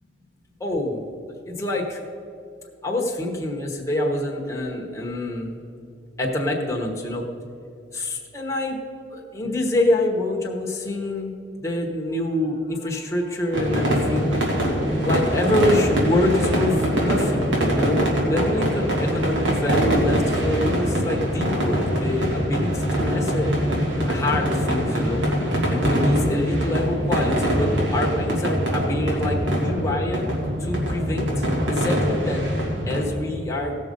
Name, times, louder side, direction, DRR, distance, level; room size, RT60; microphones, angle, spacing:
voice 1, 0.6-1.1 1.5-2.0 2.8-5.6 6.2-7.3 7.9-8.8 9.1-11.3 11.6-14.7 15.0-17.4 17.7-23.5 24.1-25.2 25.7-30.3 30.6-32.4 32.9-33.8, left 1 dB, 15° left, -2 dB, 1.2 m, -26 dB
sound 1, 13.5-33.0, equal, 90° right, 2.4 m, -23 dB
17.0 x 6.4 x 5.3 m, 2.5 s
head